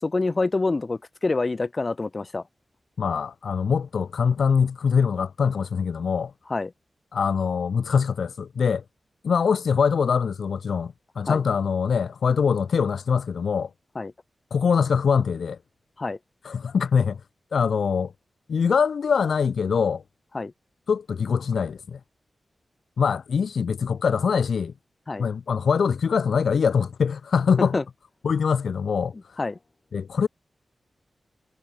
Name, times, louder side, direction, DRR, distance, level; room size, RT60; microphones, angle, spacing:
voice 1, 0.0-2.4 6.5-6.7 11.3-11.4 13.9-14.1 16.0-16.2 20.3-20.5 25.1-25.3 27.7-27.8 29.4-29.5, left 3 dB, 30° left, 7.6 m, -26 dB
voice 2, 3.0-6.3 7.1-8.8 9.2-13.7 14.5-15.6 16.4-17.2 17.5-18.1 18.5-20.0 20.9-22.0 23.0-24.7 25.2-27.8 28.2-29.1 29.9-30.3, left 6 dB, 80° left, 1.9 m, -23 dB
wide cardioid pair, 135°, 0 cm